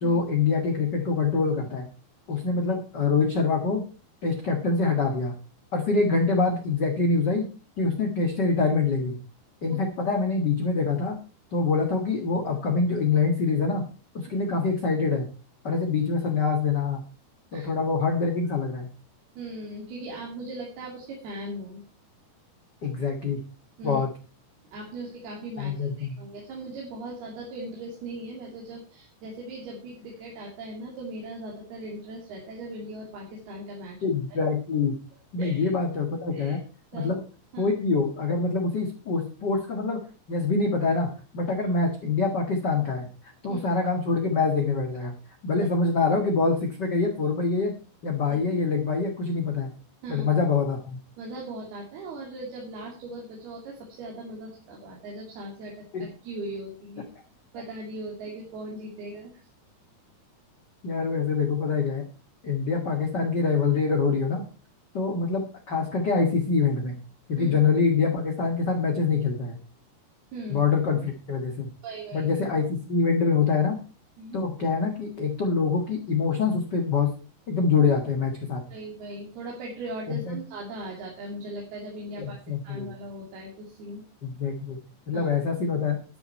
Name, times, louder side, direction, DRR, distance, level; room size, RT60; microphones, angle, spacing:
voice 1, 0.0-1.9 2.3-3.8 4.2-5.3 5.7-7.4 7.8-9.2 9.6-11.2 11.5-13.8 14.1-15.3 15.6-17.0 17.5-18.9 22.8-23.4 23.8-24.1 25.6-26.2 34.0-35.0 35.3-36.6 36.9-37.2 37.6-40.0 40.3-45.1 45.4-47.8 48.0-49.7 50.1-51.0 55.9-56.0 60.8-62.0 62.4-64.4 64.9-67.0 67.3-69.6 70.5-71.7 72.1-73.8 74.3-77.1 77.5-78.7 80.1-80.4 82.2-82.9 84.2-84.8 85.1-86.0, left 4 dB, 45° left, 2 dB, 1.5 m, -25 dB
voice 2, 19.4-21.8 23.8-24.1 24.7-34.4 35.4-35.7 36.3-36.6 36.9-37.1 37.5-37.7 43.5-43.7 50.0-50.3 51.2-57.1 57.5-59.3 67.4-67.6 70.3-70.6 71.8-72.3 74.2-74.4 78.7-82.4 82.6-84.0 85.1-85.3, right 1 dB, 80° right, -1 dB, 4.6 m, -39 dB
12.0 x 10.5 x 4.4 m, 0.34 s
omnidirectional pair, 4.5 m